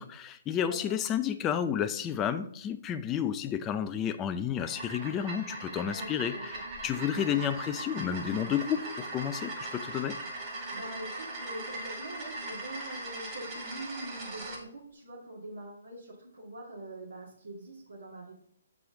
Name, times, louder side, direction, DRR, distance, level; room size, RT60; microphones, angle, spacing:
voice 1, 0.0-10.2, left 9 dB, 20° left, 10 dB, 0.5 m, -31 dB
sound 1, 4.5-14.6, right 2 dB, 30° right, 2.1 m, -40 dB
voice 2, 5.9-6.7 6.9-7.2 10.7-18.3, right 1 dB, 70° right, -4 dB, 2.3 m, -44 dB
6.9 x 4.8 x 3.9 m, 0.66 s
figure-of-eight pair, 135°, 0 cm